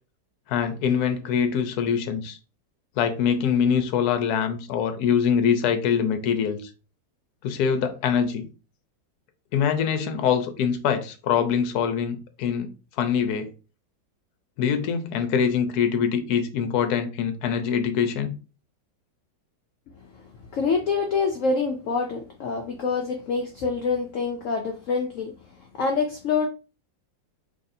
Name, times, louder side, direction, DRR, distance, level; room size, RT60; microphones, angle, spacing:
voice 1, 0.5-2.4 3.0-6.7 7.4-8.5 9.5-12.7 13.0-13.5 14.6-18.3, left 7 dB, 70° left, 1.1 m, -24 dB
voice 2, 20.0-26.5, left 4 dB, 85° left, 0.7 m, -26 dB
4.0 x 3.2 x 2.7 m
omnidirectional pair, 2.0 m